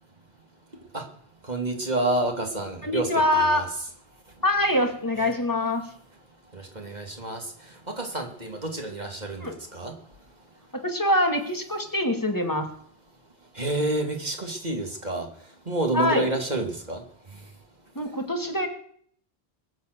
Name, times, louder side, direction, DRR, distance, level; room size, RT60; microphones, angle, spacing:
voice 1, 1.4-3.7 5.1-5.3 6.5-10.0 13.5-17.5, right 2 dB, 40° right, 3 dB, 2.8 m, -29 dB
voice 2, 2.8-3.6 4.4-5.8 9.4-9.5 10.8-12.7 15.9-16.3 18.0-18.7, left 1 dB, 20° left, 3 dB, 2.5 m, -24 dB
22.5 x 8.0 x 6.9 m, 0.62 s
omnidirectional pair, 1.1 m